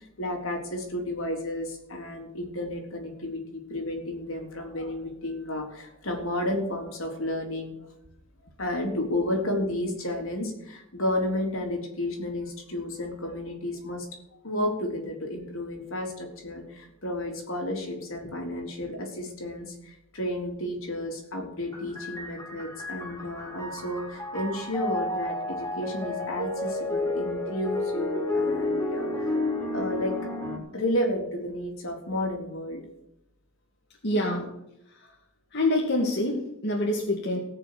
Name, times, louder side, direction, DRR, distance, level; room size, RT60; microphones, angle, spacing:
voice 1, 0.0-7.7 8.6-14.1 14.4-29.4 29.7-30.1 30.7-32.8 34.3-34.5, left 1 dB, 70° left, 2 dB, 3.6 m, -32 dB
sound 1, 21.7-30.6, left 2 dB, 15° left, 4.2 m, -31 dB
voice 2, 34.0-34.5 35.5-37.4, left 1 dB, 50° left, -2 dB, 2.5 m, -26 dB
19.0 x 6.7 x 7.5 m, 0.83 s
head